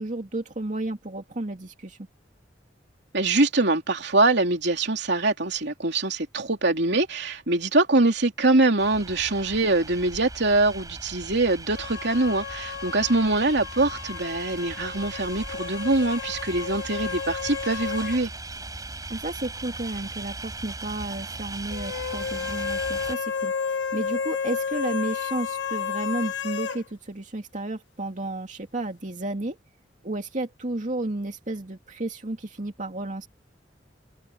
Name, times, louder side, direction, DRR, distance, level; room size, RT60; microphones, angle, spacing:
voice 1, 0.0-2.0 19.1-23.5 23.9-29.6 30.0-33.3, right 2 dB, 45° right, 2.5 m, -32 dB
voice 2, 3.1-18.3, right 2 dB, 65° right, 3.3 m, -23 dB
sound 1, 8.8-23.2, right 2 dB, 20° right, 4.4 m, -39 dB
sound 2, 11.7-18.3 18.6-18.7 21.7-26.8, left 6 dB, 75° left, 1.4 m, -32 dB
head